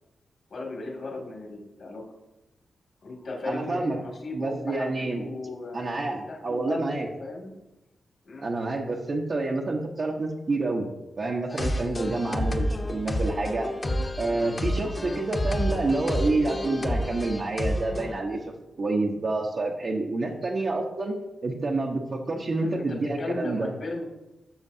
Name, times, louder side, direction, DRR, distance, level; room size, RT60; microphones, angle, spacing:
voice 1, 0.5-2.0 3.0-7.5 8.2-8.5 12.2-12.4 22.5-24.0, left 2 dB, 65° left, -1 dB, 2.3 m, -36 dB
voice 2, 3.4-4.0 4.3-5.2 5.7-7.1 8.4-10.9 11.2-13.7 14.2-18.5 18.8-21.1 21.4-23.7, right 2 dB, 50° right, -2 dB, 1.0 m, -28 dB
sound 1, 11.5-18.1, left 1 dB, 25° left, 1.0 m, -29 dB
13.0 x 6.5 x 2.7 m, 0.99 s
cardioid pair, 80°, 0 cm